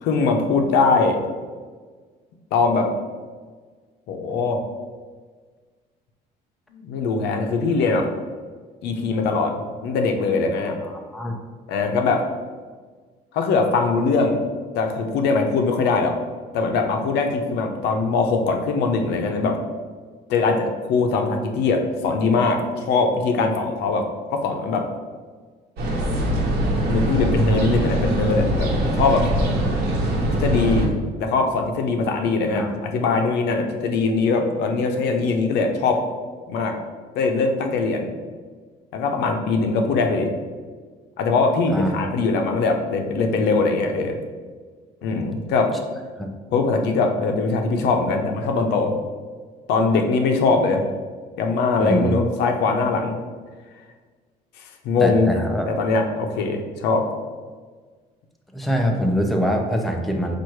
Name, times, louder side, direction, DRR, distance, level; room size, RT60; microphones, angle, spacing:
voice 1, 0.0-1.2 2.5-2.9 4.1-4.6 6.7-8.1 8.8-9.5 9.8-10.8 11.7-12.2 13.3-14.4 14.8-16.1 16.5-19.6 20.3-24.0 24.3-24.9 26.9-29.3 30.3-30.9 31.2-36.0 36.5-36.8 37.2-38.1 38.9-40.3 41.2-44.1 45.0-45.7 46.5-48.9 49.7-50.8 51.4-53.2 54.8-55.3 55.7-57.0, left 4 dB, 80° left, 4 dB, 0.6 m, -21 dB
voice 2, 10.8-11.4 32.5-32.8 41.7-42.1 46.2-46.3 51.8-52.2 55.0-55.7 58.5-60.4, equal, ahead, 2 dB, 0.5 m, -24 dB
sound 1, 25.8-30.9, right 1 dB, 75° right, 1.0 m, -22 dB
4.6 x 2.5 x 4.5 m, 1.5 s
cardioid pair, 110°, 17 cm